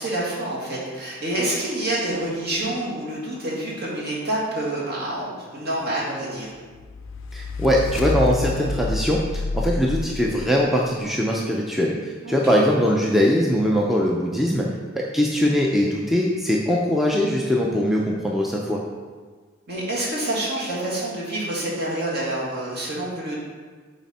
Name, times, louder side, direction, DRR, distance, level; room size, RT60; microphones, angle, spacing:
voice 1, 0.0-6.5 12.2-12.4 19.7-23.4, right 1 dB, 50° right, -5 dB, 2.0 m, -27 dB
sound 1, 6.7-10.9, left 3 dB, 65° left, 0.4 m, -28 dB
voice 2, 7.3-14.7 14.9-18.8, equal, ahead, -3 dB, 0.5 m, -21 dB
7.8 x 4.1 x 4.2 m, 1.5 s
head